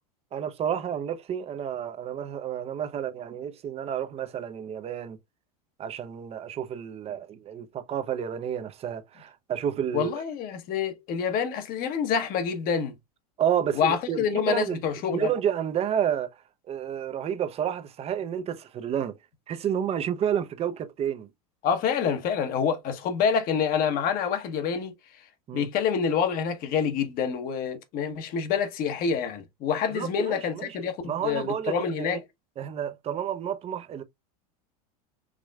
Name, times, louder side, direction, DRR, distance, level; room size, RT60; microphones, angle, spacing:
voice 1, 0.3-5.2 5.8-10.1 13.4-14.8 15.1-16.4 16.7-19.1 19.5-21.3 25.5-25.7 29.9-32.2 32.6-34.0, right 9 dB, 30° right, 0.6 m, -30 dB
voice 2, 9.9-13.0 13.8-15.3 21.6-24.9 25.5-32.2, left 7 dB, 50° left, 1.0 m, -27 dB
4.9 x 3.0 x 2.3 m
supercardioid pair, 115°, 20 cm